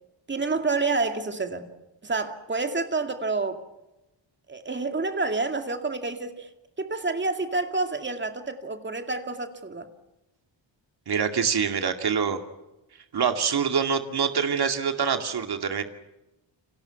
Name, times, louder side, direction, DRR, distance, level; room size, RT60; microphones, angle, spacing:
voice 1, 0.3-1.7 2.0-3.6 4.5-6.5 6.8-9.9, right 3 dB, 25° right, 6 dB, 2.3 m, -28 dB
voice 2, 11.1-12.4 13.1-15.8, right 6 dB, 55° right, 6 dB, 2.4 m, -25 dB
29.5 x 26.0 x 5.8 m, 0.98 s
wide cardioid pair, 175°, 45 cm